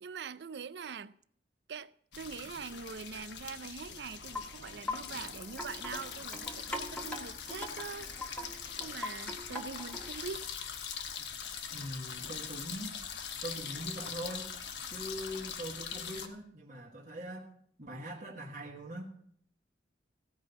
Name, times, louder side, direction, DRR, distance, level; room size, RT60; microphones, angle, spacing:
voice 1, 0.0-1.1 1.7-8.1 8.4-10.5, right 5 dB, 70° right, 0.5 m, -43 dB
sound 1, 2.1-16.3, left 7 dB, 80° left, 1.2 m, -42 dB
Wind chime, 4.1-10.3, left 2 dB, 5° left, 1.4 m, -43 dB
voice 2, 11.7-13.0 13.4-14.5 14.9-17.5 17.8-19.1, equal, 45° right, 1.5 m, -42 dB
16.0 x 5.4 x 8.1 m
head